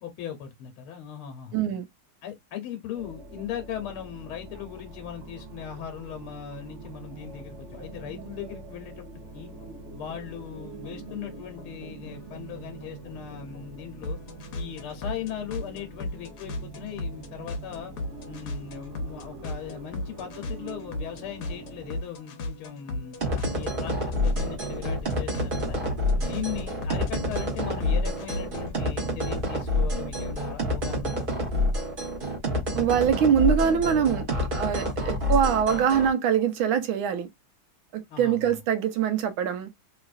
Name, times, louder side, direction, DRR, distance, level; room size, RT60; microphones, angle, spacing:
voice 1, 0.0-1.6 2.2-9.5 9.9-14.2 14.5-17.9 18.2-23.2 23.5-25.8 26.1-31.3 35.1-35.2 38.1-38.5, left 9 dB, 85° left, 1.6 m, -38 dB
voice 2, 1.5-1.8 32.8-34.3 34.6-37.3 37.9-39.7, right 8 dB, 75° right, 1.5 m, -23 dB
sound 1, 2.9-22.0, right 3 dB, 60° right, 0.7 m, -44 dB
sound 2, 9.2-28.8, left 2 dB, 60° left, 1.2 m, -38 dB
sound 3, 23.2-36.1, left 1 dB, 30° right, 1.1 m, -28 dB
3.7 x 3.0 x 2.4 m
omnidirectional pair, 2.3 m